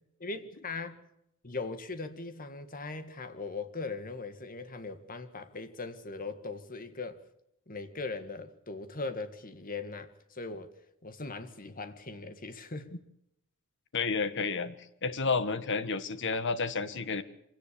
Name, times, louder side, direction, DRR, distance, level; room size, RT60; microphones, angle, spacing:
voice 1, 0.2-1.0 1.4-7.2 7.7-10.7 11.0-12.9, left 3 dB, 40° left, 1.8 m, -39 dB
voice 2, 13.9-14.7 15.0-17.2, left 4 dB, 55° left, 1.5 m, -30 dB
25.0 x 17.5 x 6.9 m
head